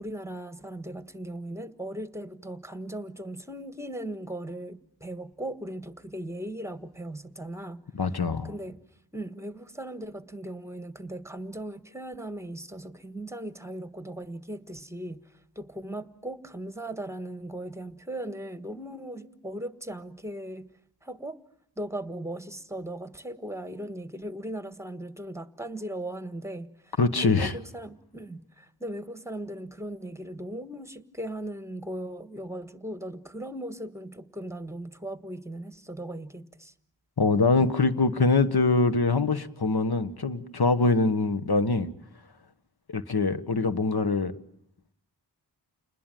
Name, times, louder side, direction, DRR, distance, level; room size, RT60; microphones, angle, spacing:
voice 1, 0.0-7.8 8.4-8.8 9.1-20.7 21.0-21.4 21.8-36.7 37.6-37.8, right 1 dB, 5° right, 1.5 m, -38 dB
voice 2, 8.0-8.5 27.0-27.5 37.2-41.9 42.9-44.3, left 3 dB, 60° left, 1.4 m, -23 dB
29.0 x 20.5 x 9.2 m
wide cardioid pair, 65°, 42 cm